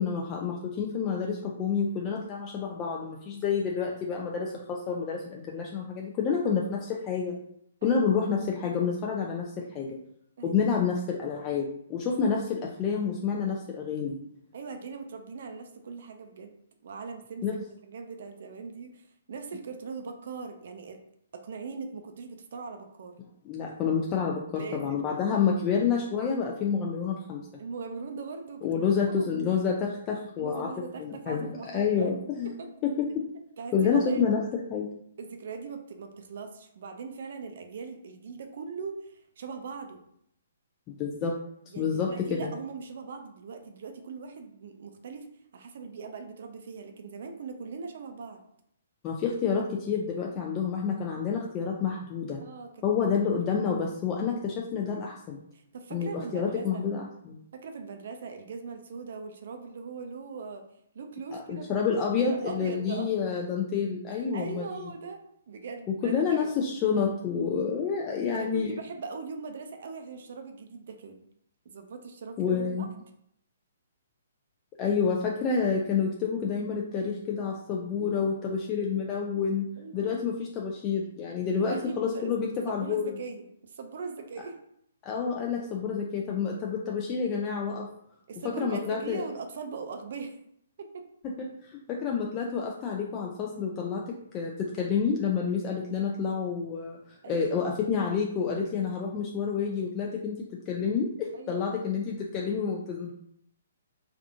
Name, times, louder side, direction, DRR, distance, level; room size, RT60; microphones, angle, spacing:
voice 1, 0.0-7.4 7.8-10.0 10.4-14.2 17.4-17.6 23.4-27.4 28.6-30.7 31.0-32.5 32.8-33.1 33.7-34.9 41.0-41.3 41.8-42.5 49.0-52.4 52.8-55.4 55.9-57.4 61.3-64.9 65.9-68.8 72.4-72.9 74.8-79.7 79.9-83.1 85.0-87.9 88.6-89.2 91.9-94.0 94.3-103.1, left 6 dB, 25° left, -1 dB, 0.4 m, -29 dB
voice 2, 14.5-16.5 16.8-21.0 21.3-23.1 24.6-25.0 27.6-28.7 29.0-29.4 30.4-32.1 32.4-32.7 33.6-34.2 35.2-40.0 41.7-45.3 45.5-48.4 52.4-52.8 55.5-56.8 57.6-60.6 60.9-63.1 64.3-65.2 65.5-66.5 68.3-71.2 71.7-72.9 79.8-80.3 81.6-82.3 82.7-84.6 88.3-90.4 90.8-91.0 97.2-97.5 101.3-101.8, right 5 dB, 55° right, 6 dB, 0.5 m, -40 dB
3.4 x 2.4 x 2.5 m, 0.71 s
figure-of-eight pair, 125°, 0 cm